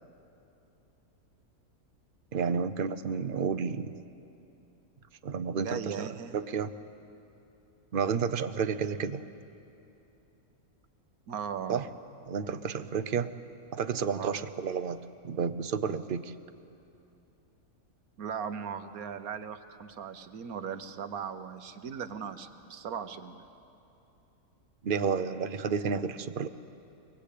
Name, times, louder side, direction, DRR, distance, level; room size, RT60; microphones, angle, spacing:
voice 1, 2.3-3.9 5.2-6.1 6.3-6.7 7.9-9.2 11.7-11.9 12.3-13.3 13.7-15.0 15.2-16.3 24.8-26.5, right 6 dB, 50° right, 12 dB, 0.7 m, -31 dB
voice 2, 5.5-6.4 11.3-11.9 14.1-14.4 18.2-23.4, right 7 dB, 75° right, 9 dB, 1.4 m, -38 dB
23.5 x 20.0 x 8.4 m, 2.8 s
omnidirectional pair, 1.5 m